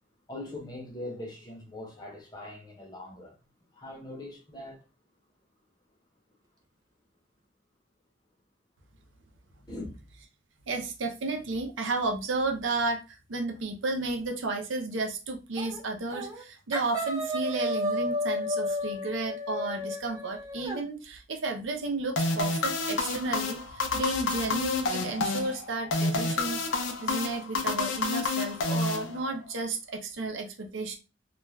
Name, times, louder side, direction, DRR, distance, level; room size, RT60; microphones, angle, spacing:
voice 1, 0.3-3.4 3.7-4.8 9.7-10.0, left 1 dB, 20° left, 0.7 m, -41 dB
voice 2, 10.7-31.0, right 3 dB, 80° right, 0.6 m, -32 dB
sound 1, 15.6-15.8 16.1-16.4 16.7-20.8, left 1 dB, 20° right, 0.5 m, -32 dB
sound 2, 22.2-29.5, left 3 dB, 85° left, 0.5 m, -29 dB
2.4 x 2.2 x 3.1 m
head